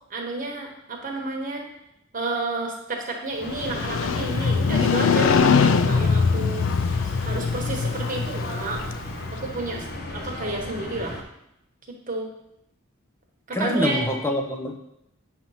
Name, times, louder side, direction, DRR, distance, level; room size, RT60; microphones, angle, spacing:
voice 1, 0.1-1.6 2.1-6.7 7.0-8.8 9.3-11.2 12.1-12.3 13.5-14.1, right 2 dB, 40° right, 0 dB, 1.1 m, -31 dB
sound 1, 3.4-11.2, left 1 dB, 50° left, 0.8 m, -36 dB
Motorcycle, 3.5-9.4, left 5 dB, 70° left, 0.4 m, -22 dB
voice 2, 13.5-14.8, left 1 dB, 10° left, 3 dB, 0.6 m, -25 dB
7.5 x 2.9 x 5.5 m, 0.81 s
head